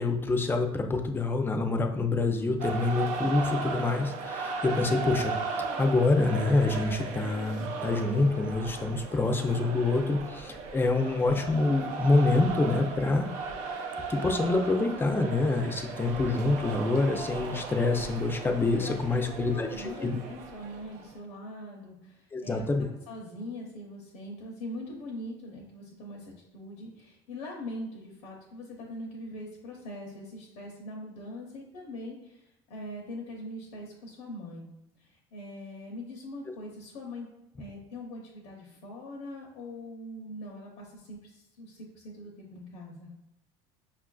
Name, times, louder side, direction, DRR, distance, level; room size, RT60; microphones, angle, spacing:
voice 1, 0.0-5.3 5.8-13.3 14.1-20.1 22.3-22.8, left 3 dB, 15° left, 5 dB, 0.5 m, -26 dB
sound 1, 2.6-21.1, right 4 dB, 65° right, 0.5 m, -36 dB
voice 2, 18.8-34.7 35.0-37.3 37.6-43.1, left 1 dB, 75° left, -1 dB, 0.7 m, -42 dB
5.4 x 2.4 x 2.3 m, 0.93 s
supercardioid pair, 95°, 13 cm